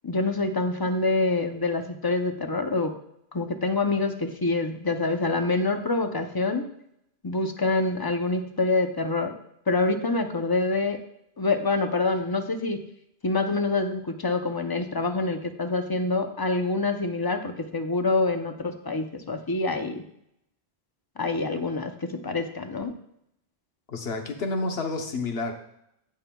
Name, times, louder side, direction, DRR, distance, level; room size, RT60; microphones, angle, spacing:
voice 1, 0.0-2.9 3.3-6.7 7.2-9.3 9.7-11.0 11.4-12.8 13.2-20.0 21.2-22.9, left 3 dB, 25° left, 6 dB, 0.6 m, -26 dB
voice 2, 23.9-25.5, left 3 dB, 75° left, 4 dB, 1.2 m, -29 dB
16.0 x 5.5 x 2.3 m, 0.76 s
omnidirectional pair, 1.1 m